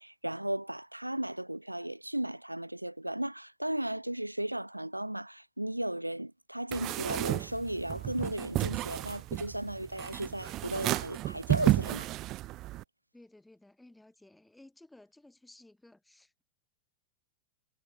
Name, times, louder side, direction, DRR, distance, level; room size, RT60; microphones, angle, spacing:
voice 1, 0.0-12.1, right 1 dB, 85° right, 0.4 m, -35 dB
sound 1, 6.7-12.8, right 16 dB, 35° right, 0.6 m, -32 dB
voice 2, 13.1-16.4, left 2 dB, 5° left, 3.9 m, -57 dB
figure-of-eight pair, 90°, 0 cm